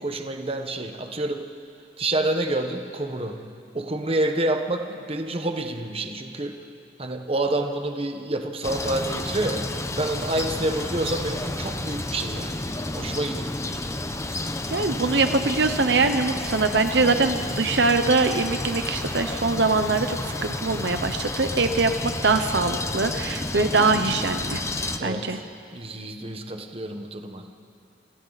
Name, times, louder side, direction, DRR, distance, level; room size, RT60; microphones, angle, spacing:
voice 1, 0.0-1.5 2.0-3.4 3.7-6.6 7.0-12.6 12.9-13.8 25.0-25.4 25.7-27.5, right 1 dB, 35° right, 5 dB, 1.3 m, -28 dB
sound 1, 8.6-25.0, left 2 dB, 15° left, 0.8 m, -31 dB
voice 2, 14.7-24.6 25.0-25.4, right 3 dB, 70° right, 8 dB, 0.9 m, -23 dB
29.5 x 27.0 x 4.2 m, 2.5 s
head